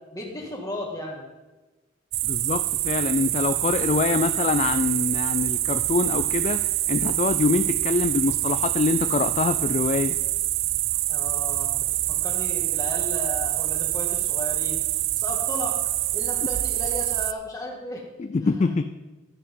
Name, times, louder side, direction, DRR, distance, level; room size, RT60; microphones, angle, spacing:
voice 1, 0.1-1.2 11.1-14.8 15.2-15.7 16.1-18.0 18.4-18.8, left 1 dB, 20° left, -1 dB, 2.0 m, -35 dB
sound 1, 2.1-17.3, right 15 dB, 85° right, 0.4 m, -26 dB
voice 2, 2.2-10.2 18.2-18.8, left 4 dB, 35° left, 10 dB, 0.3 m, -25 dB
12.5 x 10.0 x 3.8 m, 1.1 s
head